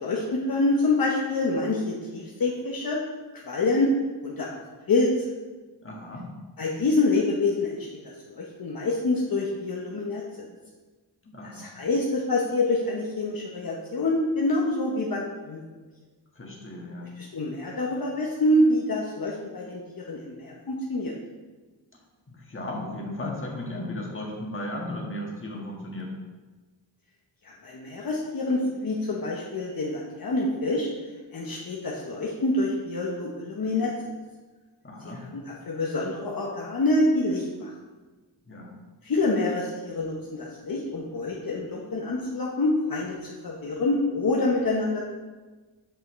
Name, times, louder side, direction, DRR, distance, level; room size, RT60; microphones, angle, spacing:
voice 1, 0.0-3.0 3.3-3.9 4.2-4.6 4.9-5.3 6.6-7.9 8.4-10.2 11.5-15.6 17.2-21.1 27.4-30.9 31.3-34.2 35.2-37.7 39.0-45.0, left 2 dB, 55° left, -3 dB, 1.0 m, -26 dB
voice 2, 5.8-6.3 11.2-11.7 16.3-17.1 22.3-26.1 34.8-35.2 38.5-38.7, left 1 dB, 30° left, -2 dB, 1.6 m, -35 dB
8.5 x 5.6 x 3.2 m, 1.3 s
wide cardioid pair, 85°, 42 cm